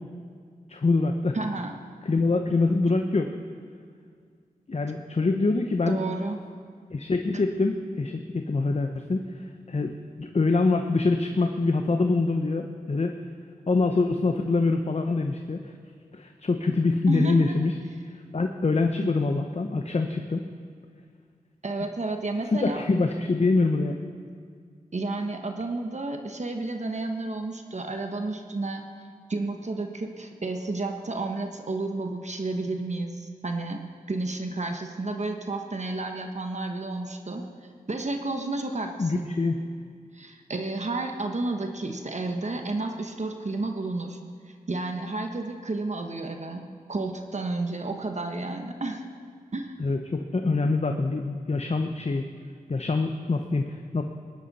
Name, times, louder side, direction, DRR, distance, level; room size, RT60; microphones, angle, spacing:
voice 1, 0.7-1.4 2.0-3.3 4.7-6.0 6.9-13.1 13.7-15.7 16.1-17.7 18.3-20.4 22.6-24.0 39.0-39.6 49.8-52.3 52.7-54.0, left 3 dB, 45° left, 5 dB, 0.9 m, -25 dB
voice 2, 1.3-1.8 5.9-6.4 7.3-7.4 17.1-17.5 21.6-22.8 24.9-28.8 29.3-33.8 34.1-37.5 37.9-39.3 40.1-44.2 44.7-49.0 49.5-49.8, right 2 dB, 50° right, 4 dB, 1.2 m, -31 dB
20.5 x 11.0 x 4.2 m, 2.1 s
cardioid pair, 50°, 15 cm